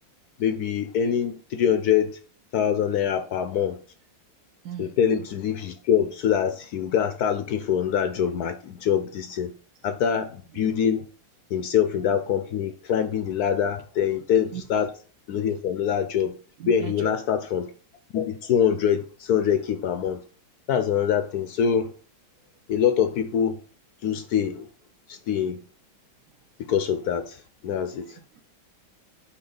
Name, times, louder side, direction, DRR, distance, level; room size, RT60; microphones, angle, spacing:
voice 1, 0.4-2.2 2.5-3.8 4.8-9.5 9.8-11.0 11.5-14.9 15.3-16.4 16.7-17.7 18.1-20.2 20.7-21.9 22.7-23.6 24.0-24.7 25.1-25.6 26.6-28.2, left 8 dB, 75° left, 0.9 m, -24 dB
voice 2, 4.6-5.0 14.5-14.6 16.6-17.4 27.9-28.5, right 8 dB, 60° right, 1.1 m, -39 dB
8.6 x 2.9 x 5.3 m
omnidirectional pair, 2.2 m